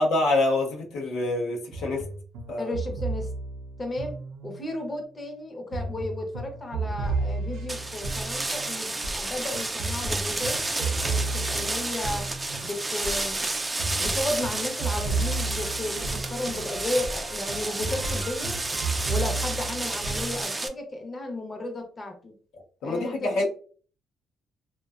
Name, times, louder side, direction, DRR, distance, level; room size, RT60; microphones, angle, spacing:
voice 1, 0.0-2.1 2.5-2.7 22.5-23.4, left 2 dB, 90° left, 0.6 m, -26 dB
sound 1, 1.7-4.8 5.7-20.4, right 3 dB, 85° right, 0.4 m, -33 dB
voice 2, 2.6-3.3 3.8-4.2 4.4-12.3 12.6-13.4 14.0-16.0 16.3-18.6 19.1-22.3 22.8-23.4, left 1 dB, 30° left, 0.6 m, -34 dB
sound 2, 7.7-20.7, right 2 dB, 20° right, 0.3 m, -31 dB
2.5 x 2.1 x 2.3 m
cardioid pair, 90°, 0 cm